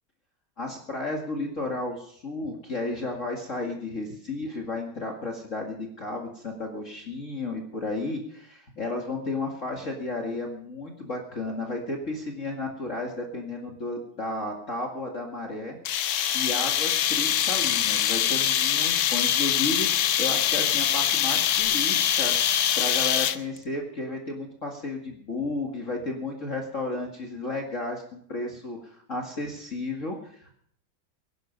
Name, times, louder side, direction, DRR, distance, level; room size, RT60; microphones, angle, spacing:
voice 1, 0.6-15.8 16.3-22.4 22.8-30.6, left 2 dB, 40° left, 0 dB, 2.4 m, -33 dB
sound 1, 15.8-23.6, left 10 dB, 80° left, 1.6 m, -24 dB
22.5 x 11.5 x 5.4 m, 0.66 s
omnidirectional pair, 2.2 m